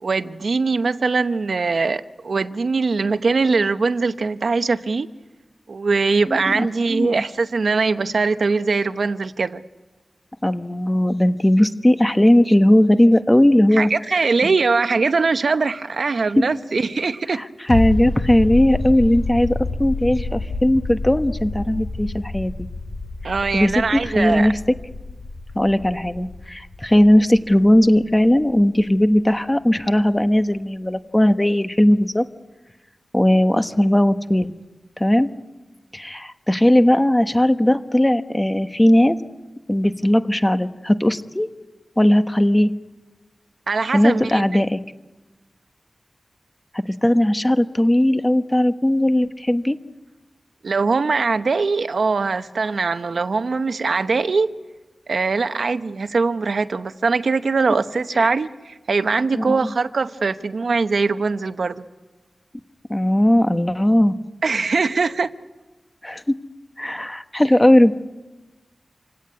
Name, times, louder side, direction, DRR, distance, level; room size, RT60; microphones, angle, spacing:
voice 1, 0.0-5.1 5.7-9.6 13.7-17.4 23.2-24.5 43.7-44.4 50.6-54.5 55.1-61.8 64.4-65.3, right 4 dB, 80° right, 0.9 m, -21 dB
voice 2, 6.3-7.1 10.4-13.9 16.4-16.5 17.3-22.7 23.5-24.6 25.5-32.2 33.1-34.5 35.0-35.3 35.9-39.2 39.7-41.5 42.0-42.7 43.9-44.8 47.0-49.8 58.2-58.3 59.3-59.7 62.9-64.1 66.0-66.4 66.8-67.9, left 1 dB, 15° left, 1.2 m, -18 dB
sound 1, 17.7-29.0 29.3-29.4, left 3 dB, 65° left, 2.4 m, -29 dB
27.0 x 17.0 x 9.7 m
wide cardioid pair, 95°, 0 cm